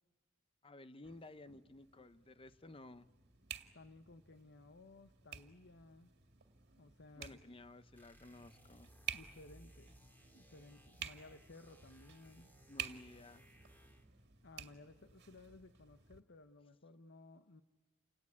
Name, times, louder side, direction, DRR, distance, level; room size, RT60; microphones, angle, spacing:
voice 1, 0.6-3.1 7.2-8.9 12.7-13.5, left 2 dB, 25° left, 13 dB, 0.8 m, -55 dB
sound 1, 1.0-16.2, right 8 dB, 55° right, 2.1 m, -52 dB
voice 2, 3.7-6.1 6.8-7.4 9.1-10.0 10.3-12.5 14.4-17.6, left 2 dB, 60° left, 10 dB, 1.0 m, -58 dB
sound 2, 7.9-14.2, equal, 10° left, 3.0 m, -63 dB
29.5 x 18.5 x 9.8 m, 1.3 s
head